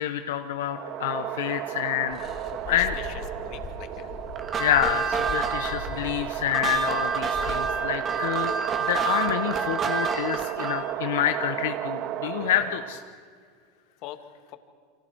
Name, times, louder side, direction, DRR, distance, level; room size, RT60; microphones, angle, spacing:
voice 1, 0.0-2.2 2.7-2.9 4.6-8.5 8.9-13.0, left 11 dB, 85° left, 6 dB, 1.1 m, -27 dB
sound 1, 0.7-13.1, right 12 dB, 45° right, 0.7 m, -34 dB
sound 2, 2.1-7.9, left 5 dB, 35° left, 4.4 m, -40 dB
voice 2, 2.5-4.1 12.4-12.5 14.0-14.2, left 13 dB, 55° left, 7 dB, 2.1 m, -42 dB
sound 3, 4.4-10.9, right 6 dB, 30° right, 2.1 m, -29 dB
29.5 x 25.0 x 4.7 m, 2.3 s
supercardioid pair, 130°, 0 cm